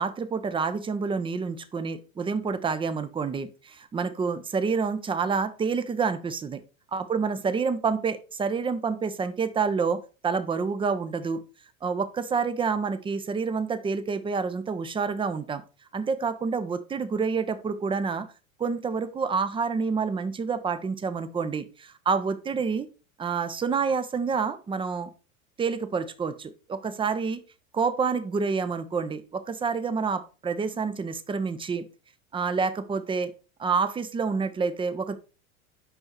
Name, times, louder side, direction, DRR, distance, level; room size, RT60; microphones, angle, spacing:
voice 1, 0.0-6.6 6.9-11.4 11.8-15.6 15.9-18.3 18.6-22.9 23.2-25.1 25.6-27.4 27.7-31.9 32.3-33.3 33.6-35.1, right 5 dB, 10° right, 11 dB, 0.7 m, -28 dB
5.7 x 5.5 x 4.4 m, 0.33 s
figure-of-eight pair, 80°, 43 cm